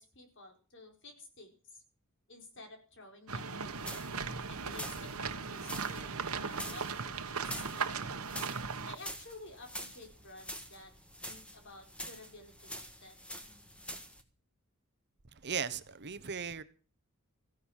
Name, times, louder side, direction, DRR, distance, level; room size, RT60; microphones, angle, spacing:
voice 1, 0.0-1.8 2.3-3.9 4.5-8.3 8.8-10.9 11.2-13.1, left 2 dB, 60° left, 4.7 m, -53 dB
sound 1, 3.3-9.0, right 5 dB, 70° right, 1.3 m, -38 dB
sound 2, 3.6-14.2, equal, 5° left, 1.8 m, -47 dB
voice 2, 15.3-16.6, right 6 dB, 50° right, 1.0 m, -37 dB
15.0 x 11.0 x 7.3 m
head